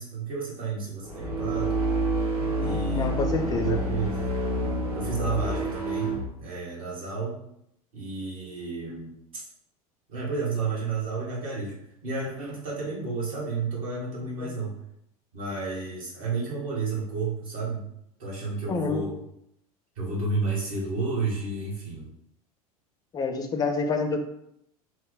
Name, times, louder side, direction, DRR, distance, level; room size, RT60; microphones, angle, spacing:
voice 1, 0.0-1.9 2.6-3.1 3.6-4.2 4.9-7.4 7.9-9.4 10.1-11.8 12.0-14.8 15.3-17.8 18.2-19.2 20.0-22.1, right 4 dB, 65° right, -5 dB, 1.3 m, -31 dB
sound 1, 1.0-6.3, right 1 dB, 85° right, 0.8 m, -28 dB
voice 2, 2.4-3.8 14.4-14.5 18.7-19.0 23.1-24.2, left 3 dB, 20° left, 6 dB, 0.4 m, -28 dB
3.0 x 2.0 x 3.8 m, 0.76 s
figure-of-eight pair, 80°, 19 cm